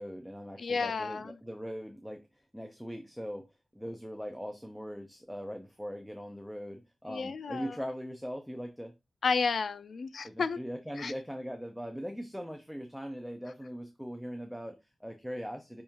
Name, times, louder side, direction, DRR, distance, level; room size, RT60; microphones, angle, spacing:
voice 1, 0.0-3.5 3.7-8.9 10.2-15.8, equal, ahead, 0.5 m, -40 dB
voice 2, 0.6-1.4 7.1-7.8 9.2-10.6 11.0-11.1, left 5 dB, 70° left, 0.3 m, -32 dB
5.3 x 3.5 x 2.9 m
wide cardioid pair, 160°, 0 cm